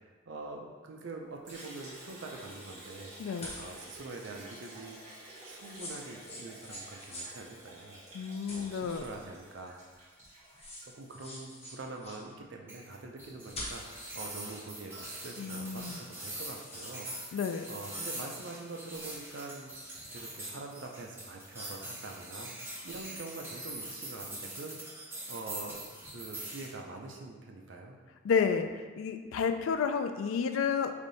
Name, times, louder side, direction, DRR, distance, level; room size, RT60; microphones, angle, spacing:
voice 1, 0.3-5.0 5.4-9.8 10.8-19.7 20.1-22.5 22.8-28.0, right 3 dB, 60° right, 1 dB, 0.5 m, -45 dB
Liquid, 1.5-11.6, right 1 dB, 35° right, 1.3 m, -50 dB
voice 2, 3.2-3.5 8.1-9.0 15.4-16.0 17.3-17.7 28.2-28.7 29.0-30.9, left 6 dB, 85° left, 7 dB, 0.3 m, -30 dB
sound 1, 3.4-3.8 5.6-7.3 8.5-9.2 10.2-10.3 10.6-12.2 13.5-14.0 16.3-17.1, left 1 dB, 30° left, 0.7 m, -44 dB
sound 2, 12.7-26.7, right 1 dB, 10° right, 0.7 m, -43 dB
3.4 x 2.7 x 3.9 m, 1.4 s
head